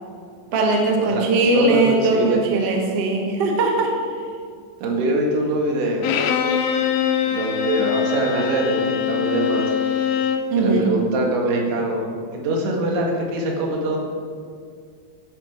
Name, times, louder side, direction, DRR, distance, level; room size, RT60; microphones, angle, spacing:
voice 1, 0.5-4.0 10.5-10.9, right 2 dB, 55° right, 0 dB, 1.7 m, -20 dB
voice 2, 1.5-2.7 4.8-6.2 7.2-10.2 10.6-14.0, right 1 dB, 85° right, 0 dB, 4.2 m, -23 dB
Bowed string instrument, 6.0-10.5, left 7 dB, 85° left, 2.1 m, -23 dB
12.5 x 8.0 x 5.9 m, 2.2 s
omnidirectional pair, 5.2 m